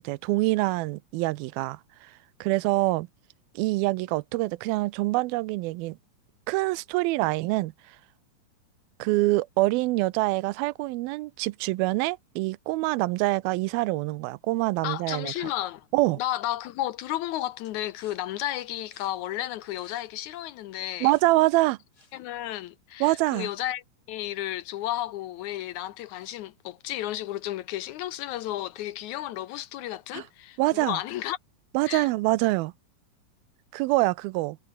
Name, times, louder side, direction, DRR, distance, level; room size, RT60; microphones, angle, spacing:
voice 1, 0.0-3.1 3.6-6.0 6.5-8.0 9.0-15.5 15.9-16.2 21.0-21.8 23.0-23.5 30.1-30.2 30.6-31.0 31.7-32.7 33.7-34.6, right 20 dB, 90° right, 2.5 m, -25 dB
voice 2, 14.8-15.9 16.2-21.1 22.1-23.8 24.1-31.4 31.9-32.1, left 13 dB, 75° left, 1.8 m, -33 dB
sound 1, 17.6-22.5, left 3 dB, 25° left, 3.9 m, -60 dB
omnidirectional pair, 4.2 m